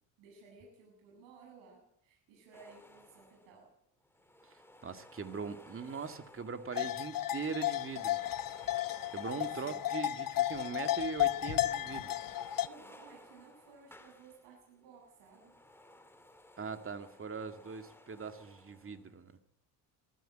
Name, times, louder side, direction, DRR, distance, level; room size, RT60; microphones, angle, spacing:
voice 1, 0.2-3.7 9.5-9.8 12.3-12.4 12.6-15.5, right 4 dB, 80° right, 0 dB, 7.7 m, -57 dB
sound 1, 2.5-3.6 4.0-7.0 7.3-10.4 10.8-14.6 14.9-19.2, left 1 dB, 5° left, 2.5 m, -58 dB
voice 2, 4.8-8.3 9.1-12.2 16.6-19.3, right 5 dB, 30° right, 8 dB, 2.1 m, -41 dB
sound 2, 6.7-12.7, left 13 dB, 45° left, 1.1 m, -33 dB
22.5 x 14.5 x 9.0 m, 0.76 s
supercardioid pair, 95°, 45 cm